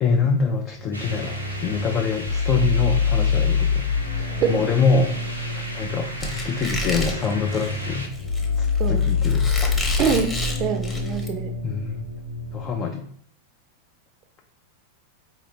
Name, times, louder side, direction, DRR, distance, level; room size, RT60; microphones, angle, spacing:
voice 1, 0.0-3.9 4.5-8.1 8.6-9.5 11.6-12.0 12.5-13.0, left 5 dB, 30° left, 2 dB, 0.4 m, -25 dB
sound 1, 0.7-12.7, left 5 dB, 70° left, 0.8 m, -26 dB
sound 2, 0.9-8.1, equal, 85° right, 0.9 m, -37 dB
Squeak, 6.2-11.3, equal, 10° left, 0.9 m, -30 dB
voice 2, 10.0-10.3 10.6-11.5, right 7 dB, 35° right, 4 dB, 0.5 m, -24 dB
4.2 x 2.7 x 3.1 m, 0.63 s
figure-of-eight pair, 90°, 0 cm